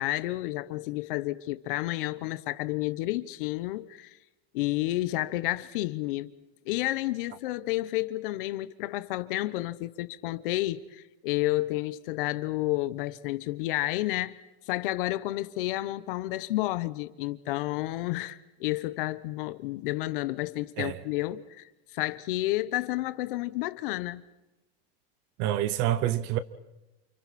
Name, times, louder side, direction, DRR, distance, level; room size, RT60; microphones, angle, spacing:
voice 1, 0.0-4.2 4.5-6.3 6.7-14.4 14.7-24.2, left 17 dB, 65° left, 1.0 m, -31 dB
voice 2, 25.4-26.4, right 12 dB, 40° right, 0.9 m, -27 dB
29.5 x 29.0 x 4.3 m
supercardioid pair, 180°, 29 cm